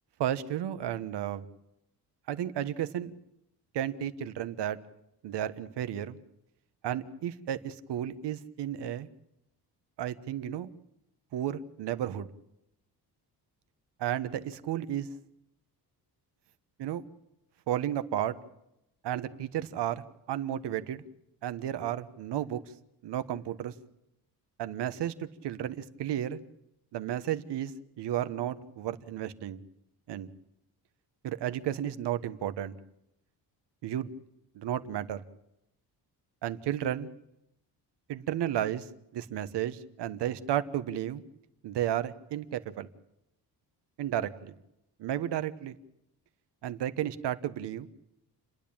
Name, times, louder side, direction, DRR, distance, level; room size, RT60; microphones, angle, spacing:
voice 1, 0.2-1.4 2.3-3.1 3.7-4.8 5.2-6.2 6.8-9.1 10.0-10.7 11.3-12.3 14.0-15.1 16.8-17.0 17.7-18.4 19.0-21.0 21.4-22.6 23.0-23.7 24.6-26.4 26.9-27.7 28.0-29.6 30.1-30.3 31.2-32.8 33.8-34.1 34.5-35.2 36.4-37.1 38.1-41.2 41.6-42.9 44.0-44.5 45.0-45.7 46.6-47.9, right 11 dB, 85° right, 11 dB, 1.3 m, -33 dB
29.5 x 10.5 x 8.8 m, 0.84 s
wide cardioid pair, 175°, 40 cm